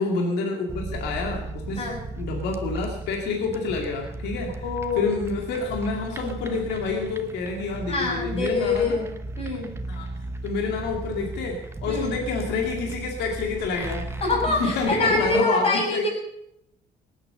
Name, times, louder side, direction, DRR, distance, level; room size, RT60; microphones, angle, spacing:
voice 1, 0.0-1.9 2.2-4.5 5.0-9.0 9.9-10.1 10.4-14.2 14.5-16.1, left 4 dB, 80° left, 1 dB, 2.4 m, -28 dB
sound 1, 0.7-15.4, right 2 dB, 15° right, 1.1 m, -36 dB
voice 2, 4.6-5.1 7.9-9.1 9.4-9.7 11.9-12.1 14.2-16.1, left 3 dB, 35° left, -1 dB, 6.8 m, -25 dB
18.5 x 8.9 x 6.8 m, 0.81 s
cardioid pair, 110°, 17 cm